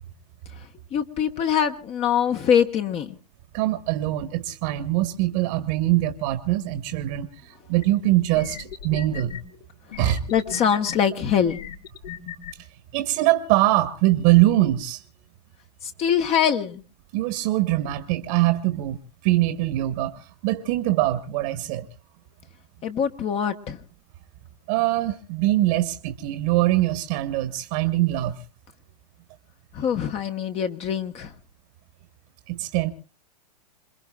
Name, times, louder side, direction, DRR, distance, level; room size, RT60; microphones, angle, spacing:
voice 1, 0.9-3.1 10.3-11.6 15.8-16.8 22.8-23.8 29.7-31.3, left 8 dB, 30° left, 7 dB, 1.1 m, -23 dB
voice 2, 3.5-7.3 7.7-9.3 10.0-10.2 12.9-15.0 17.1-19.0 19.2-21.9 24.7-28.4 32.5-32.9, right 15 dB, 45° right, 10 dB, 1.3 m, -22 dB
sound 1, 7.8-7.9 8.3-9.4 9.9-11.0 11.5-12.5, left 8 dB, 75° left, 2.1 m, -37 dB
27.5 x 21.5 x 2.3 m, 0.36 s
hypercardioid pair, 125°, 21 cm